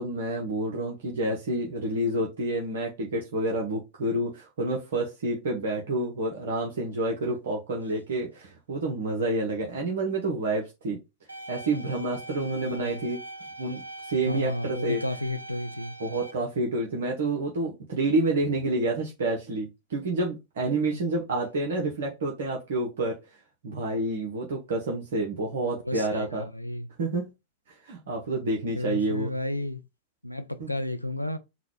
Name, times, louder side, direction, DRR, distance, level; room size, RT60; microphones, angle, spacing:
voice 1, 0.0-11.0 11.5-13.2 13.6-15.0 16.0-23.2 23.6-26.5 27.0-27.3 27.7-29.3 30.6-30.7, right 2 dB, 60° right, 0.8 m, -29 dB
sound 1, 11.3-16.3, right 1 dB, 85° right, 0.5 m, -42 dB
voice 2, 12.6-13.0 14.3-15.9 20.8-21.0 25.9-26.9 28.7-29.8 30.2-31.4, left 1 dB, 90° left, 0.4 m, -32 dB
3.9 x 2.2 x 4.5 m
figure-of-eight pair, 90°, 0 cm